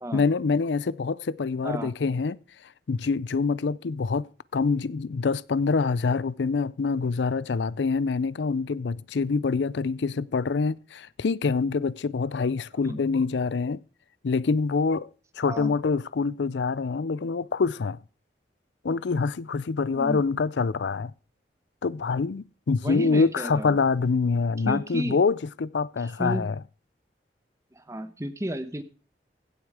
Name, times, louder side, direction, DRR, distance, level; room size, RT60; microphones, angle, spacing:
voice 1, 0.1-2.4 2.9-4.3 4.5-13.8 14.2-15.1 15.4-18.0 18.8-21.1 21.8-26.6, left 4 dB, 85° left, 0.5 m, -25 dB
voice 2, 1.6-1.9 12.9-13.0 15.5-15.7 19.9-20.2 22.8-23.8 24.6-25.2 26.0-26.5 27.7-28.8, equal, 15° right, 1.1 m, -32 dB
16.0 x 8.0 x 4.9 m
head